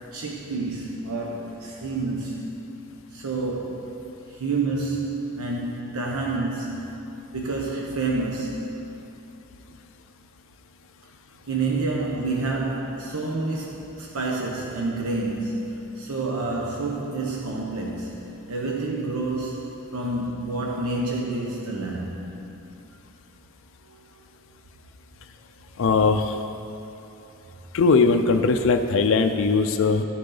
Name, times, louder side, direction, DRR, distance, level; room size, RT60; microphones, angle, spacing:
voice 1, 0.1-2.6 3.1-4.0 4.3-6.9 7.3-8.8 11.5-18.2 18.5-22.3 23.9-24.0, right 3 dB, 90° right, -2 dB, 0.9 m, -28 dB
voice 2, 25.8-26.4 27.7-30.0, left 4 dB, 65° left, 6 dB, 0.4 m, -20 dB
12.5 x 6.5 x 3.9 m, 2.9 s
head